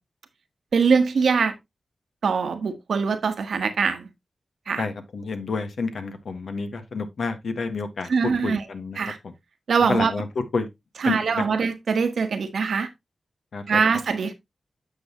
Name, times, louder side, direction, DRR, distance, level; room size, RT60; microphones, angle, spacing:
voice 1, 0.7-1.5 2.2-4.1 4.7-4.8 8.1-8.6 9.0-9.2 9.7-10.1 11.0-12.9 13.7-14.3, right 5 dB, 85° right, 1.2 m, -22 dB
voice 2, 4.8-8.1 8.4-9.0 9.2-9.3 9.9-10.3 10.5-10.7 11.0-11.4 13.5-13.8, left 4 dB, 80° left, 1.5 m, -29 dB
8.7 x 6.4 x 2.9 m
cardioid pair, 65°, 0 cm